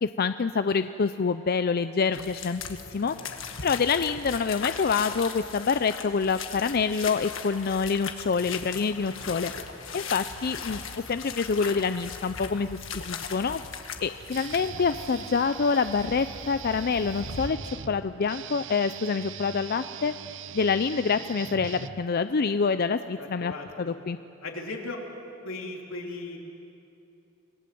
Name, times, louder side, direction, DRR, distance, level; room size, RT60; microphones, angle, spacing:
voice 1, 0.0-3.2 3.6-9.5 9.9-10.8 11.1-12.8 13.1-13.6 14.0-17.6 17.9-20.1 20.5-23.5 23.8-24.2, left 5 dB, 50° left, 11 dB, 0.5 m, -26 dB
sound 1, 2.1-17.5, left 6 dB, 70° left, 1.6 m, -39 dB
Guitar, 14.3-22.3, right 8 dB, 65° right, 0.7 m, -41 dB
voice 2, 23.1-24.0 24.4-25.0 25.4-26.4, left 2 dB, 85° left, 0 dB, 3.4 m, -37 dB
27.0 x 19.0 x 7.8 m, 2.8 s
head